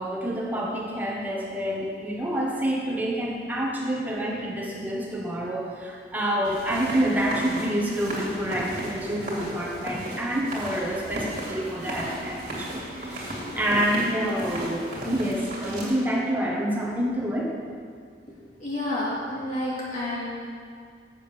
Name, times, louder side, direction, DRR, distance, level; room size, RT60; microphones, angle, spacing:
voice 1, 0.0-17.5, right 1 dB, 10° right, -4 dB, 1.4 m, -28 dB
sound 1, 6.4-15.9, right 1 dB, 45° right, 2.5 m, -35 dB
voice 2, 18.6-20.4, left 1 dB, 45° left, -7 dB, 2.7 m, -29 dB
7.5 x 7.0 x 6.7 m, 2.1 s
head